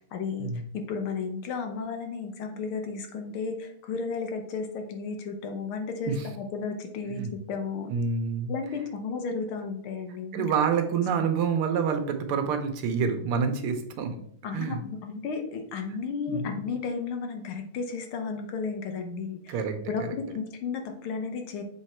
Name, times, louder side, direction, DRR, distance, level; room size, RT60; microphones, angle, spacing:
voice 1, 0.0-7.2 7.5-7.9 8.5-10.5 14.4-19.6 19.9-20.0 20.3-21.6, left 5 dB, 80° left, 5 dB, 1.8 m, -33 dB
voice 2, 7.9-8.5 10.3-14.2 14.5-14.8 16.3-16.6 19.5-20.1, right 6 dB, 85° right, 7 dB, 1.7 m, -27 dB
7.3 x 3.6 x 4.4 m, 0.65 s
omnidirectional pair, 2.3 m